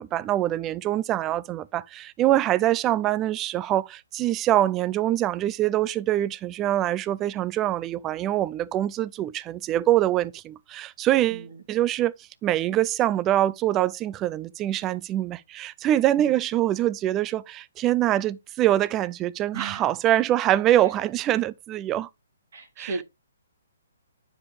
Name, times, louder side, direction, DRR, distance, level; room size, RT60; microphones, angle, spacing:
voice 1, 0.0-12.1 12.4-22.1 22.8-23.0, right 13 dB, 20° right, 0.4 m, -24 dB
voice 2, 19.5-19.9 22.5-23.0, right 4 dB, 65° right, 2.1 m, -35 dB
9.4 x 5.0 x 3.2 m
hypercardioid pair, 145°, 0 cm